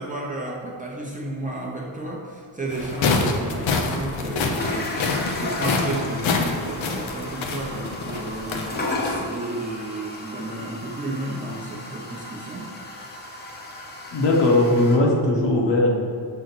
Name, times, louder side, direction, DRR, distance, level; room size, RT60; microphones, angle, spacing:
voice 1, 0.0-12.7, right 2 dB, 15° right, -3 dB, 0.7 m, -32 dB
sound 1, 2.7-9.2, left 4 dB, 85° left, 1.0 m, -27 dB
sound 2, 4.6-15.0, left 2 dB, 20° left, 0.8 m, -34 dB
voice 2, 14.1-16.0, left 2 dB, 65° left, -2 dB, 1.6 m, -19 dB
6.2 x 4.0 x 6.1 m, 2.3 s
cardioid pair, 170°, 46 cm